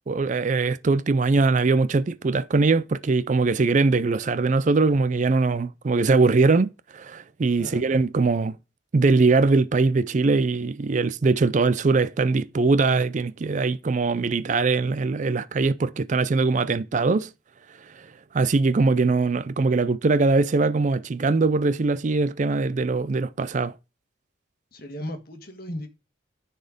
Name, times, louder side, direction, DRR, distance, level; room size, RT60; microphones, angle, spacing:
voice 1, 0.1-8.6 8.9-17.3 17.9-18.1 18.3-23.7, right 3 dB, 40° right, 0.4 m, -21 dB
voice 2, 24.7-25.9, left 1 dB, 50° left, 1.6 m, -36 dB
10.0 x 4.2 x 5.1 m
head